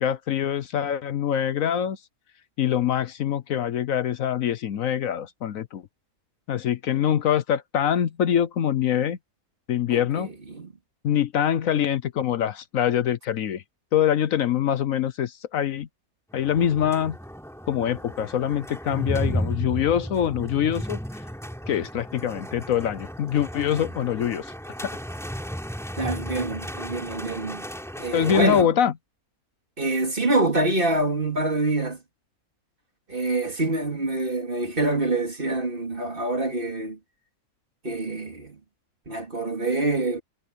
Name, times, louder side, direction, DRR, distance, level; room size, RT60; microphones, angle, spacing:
voice 1, 0.0-2.0 2.6-5.8 6.5-9.2 9.7-10.3 11.0-13.6 13.9-15.9 16.3-17.2 17.7-21.0 21.7-24.5 24.8-24.9 28.1-28.9, left 9 dB, 70° left, 1.1 m, -24 dB
voice 2, 9.9-10.2 10.5-10.7 26.0-27.6 28.0-28.7 29.8-32.0 33.1-37.0 37.8-38.6 39.1-40.2, right 2 dB, 35° right, 3.0 m, -26 dB
sound 1, 16.3-28.6, equal, ahead, 3.6 m, -34 dB
omnidirectional pair, 1.5 m